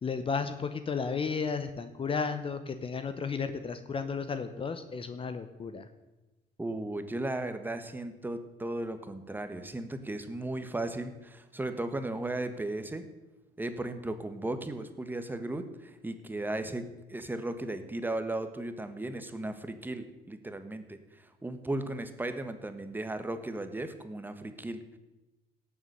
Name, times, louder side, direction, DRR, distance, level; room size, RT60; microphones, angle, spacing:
voice 1, 0.0-5.9, left 5 dB, 30° left, 10 dB, 0.9 m, -33 dB
voice 2, 6.6-13.1 13.6-25.0, right 2 dB, 10° right, 9 dB, 1.3 m, -36 dB
17.5 x 7.2 x 6.8 m, 1.1 s
cardioid pair, 110°, 17 cm